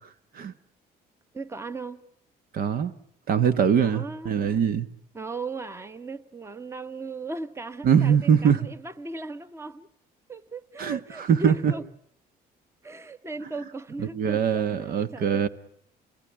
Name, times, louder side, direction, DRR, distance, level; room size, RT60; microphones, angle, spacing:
voice 1, 1.3-2.0 3.8-4.3 5.1-9.9 10.3-11.8 12.8-15.5, right 3 dB, 15° right, 1.2 m, -37 dB
voice 2, 2.5-2.9 3.3-4.9 7.8-8.7 10.8-11.0 11.3-11.7 14.1-15.5, right 7 dB, 60° right, 1.4 m, -22 dB
28.5 x 19.5 x 10.0 m
cardioid pair, 110°, 17 cm